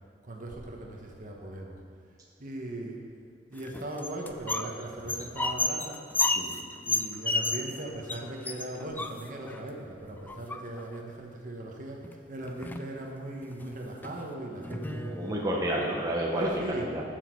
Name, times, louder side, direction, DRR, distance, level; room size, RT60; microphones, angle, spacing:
voice 1, 0.2-1.8 2.4-3.0 3.5-6.0 6.9-15.1 16.4-16.9, right 1 dB, 45° right, 0 dB, 1.3 m, -38 dB
sound 1, 3.6-4.7 5.0-7.8 8.1-8.2 8.4-9.6 10.3-10.9 12.0-12.1 12.4-12.9 13.4-13.6 14.0-14.1 14.6-15.4, left 3 dB, 10° left, 0.3 m, -31 dB
voice 2, 14.7-16.5 16.9-17.0, right 1 dB, 20° right, -3 dB, 1.1 m, -30 dB
14.0 x 6.3 x 4.7 m, 2.1 s
head